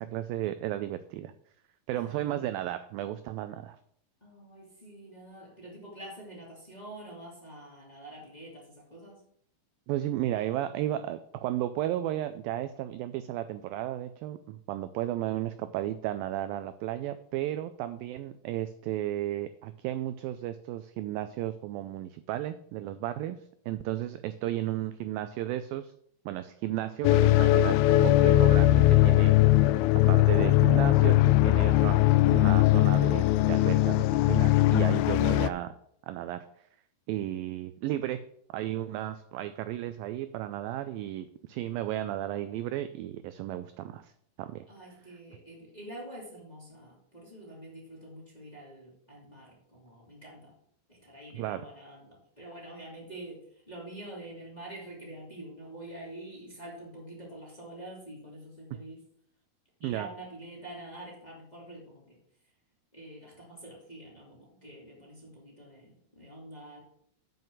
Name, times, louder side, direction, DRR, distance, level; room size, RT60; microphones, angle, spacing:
voice 1, 0.0-1.3 1.9-3.8 9.9-25.9 26.3-29.4 30.1-35.7 36.1-36.5 37.1-38.2 38.5-44.1 44.4-44.7 51.3-51.7 58.7-58.8 59.8-60.1, right 13 dB, 85° right, 11 dB, 2.1 m, -34 dB
voice 2, 1.9-2.5 4.2-9.3 44.7-50.6 50.9-59.0 59.8-62.2 62.9-66.8, right 1 dB, 15° left, -4 dB, 2.1 m, -46 dB
sound 1, 27.0-35.5, left 16 dB, 85° left, 2.4 m, -21 dB
8.0 x 5.5 x 7.6 m, 0.67 s
omnidirectional pair, 4.6 m